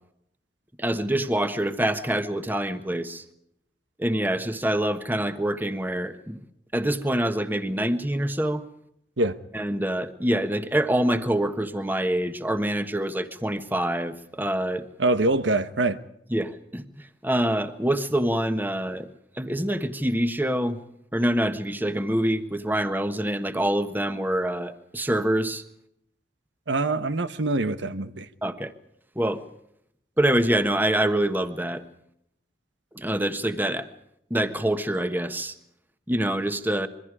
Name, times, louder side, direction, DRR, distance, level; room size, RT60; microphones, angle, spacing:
voice 1, 0.8-3.2 4.0-6.4 6.7-8.6 9.5-14.9 16.3-19.1 19.4-20.8 21.1-25.6 28.4-28.7 29.1-29.4 30.2-31.8 32.9-33.9 34.3-35.5 36.1-36.9, right 1 dB, 10° right, 1.3 m, -25 dB
voice 2, 15.0-16.0 26.7-28.3, right 2 dB, 90° right, 1.2 m, -24 dB
26.5 x 23.0 x 4.9 m
head